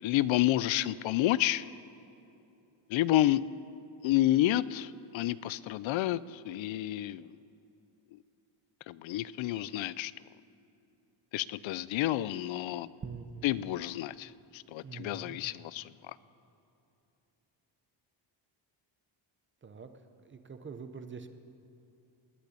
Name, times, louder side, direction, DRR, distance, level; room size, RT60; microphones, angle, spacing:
voice 1, 0.0-1.7 2.9-3.4 4.0-7.4 8.9-10.1 11.3-12.9 13.4-16.2, left 14 dB, 75° left, 18 dB, 0.5 m, -30 dB
voice 2, 13.0-13.7 14.8-15.4 19.6-19.9 20.2-21.3, right 5 dB, 25° right, 9 dB, 0.8 m, -44 dB
20.0 x 6.8 x 9.8 m, 2.9 s
cardioid pair, 165°, 47 cm